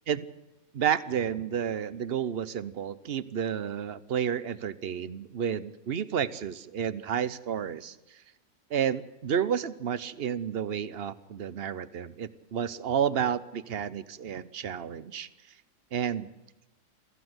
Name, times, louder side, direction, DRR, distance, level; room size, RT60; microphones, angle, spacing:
voice 1, 0.7-8.0 8.7-15.3 15.9-16.3, right 8 dB, 50° right, 16 dB, 0.8 m, -31 dB
24.5 x 15.0 x 7.9 m, 1.1 s
omnidirectional pair, 1.7 m